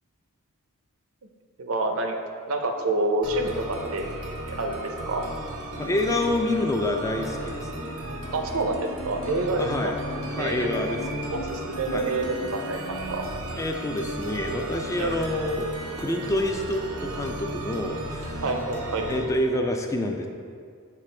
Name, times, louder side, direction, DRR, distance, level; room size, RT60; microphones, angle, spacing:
voice 1, 1.6-2.2 2.5-4.1 4.5-5.2 8.3-8.8 9.0-9.9 10.4-10.9 11.3-13.2 15.0-15.1 18.4-19.1, right 2 dB, 70° right, 4 dB, 0.6 m, -28 dB
sound 1, 3.2-19.2, right 1 dB, 90° right, 0.9 m, -35 dB
sound 2, 5.7-15.1, left 3 dB, 65° left, 1.0 m, -43 dB
voice 2, 5.8-7.9 9.5-10.0 10.3-11.2 11.9-12.0 13.5-15.7 16.0-18.4 19.1-20.3, left 1 dB, 15° left, 3 dB, 0.3 m, -27 dB
7.4 x 4.2 x 3.3 m, 2.2 s
head